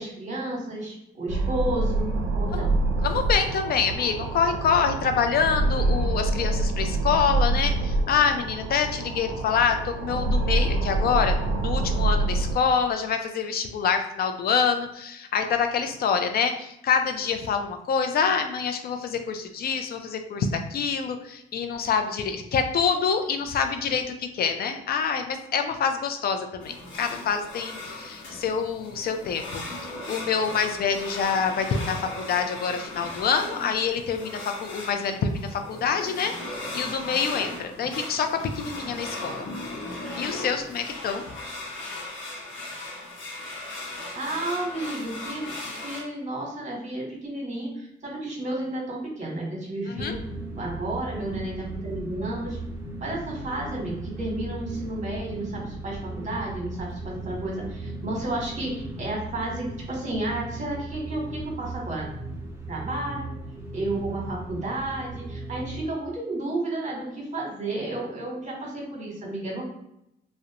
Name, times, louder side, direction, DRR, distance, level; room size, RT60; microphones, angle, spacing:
voice 1, 0.0-2.8 44.1-50.2 50.5-52.6 53.0-62.1 62.7-63.3 63.7-69.6, right 1 dB, 35° right, -2 dB, 1.0 m, -32 dB
sound 1, 1.3-12.6, right 2 dB, 85° right, 0.4 m, -26 dB
voice 2, 3.0-39.5 40.2-41.2 49.9-50.2, left 6 dB, 50° left, 6 dB, 0.4 m, -26 dB
sound 2, 26.6-46.0, left 2 dB, 70° left, 0.8 m, -37 dB
sound 3, 49.9-65.8, right 2 dB, 10° right, 0.6 m, -37 dB
2.4 x 2.1 x 2.7 m, 0.81 s
cardioid pair, 90°, 20 cm